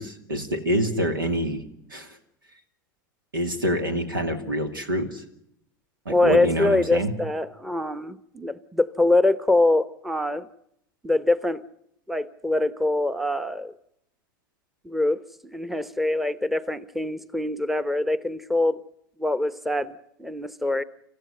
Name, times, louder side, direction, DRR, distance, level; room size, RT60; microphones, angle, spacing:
voice 1, 0.0-1.6 1.9-2.2 3.3-5.2 6.1-7.1, equal, 90° right, 8 dB, 2.6 m, -26 dB
voice 2, 6.1-10.5 11.0-11.6 12.1-13.7 14.8-18.8 19.2-20.8, left 2 dB, ahead, 14 dB, 0.9 m, -24 dB
27.5 x 15.0 x 9.5 m, 0.79 s
hypercardioid pair, 90°, 11 cm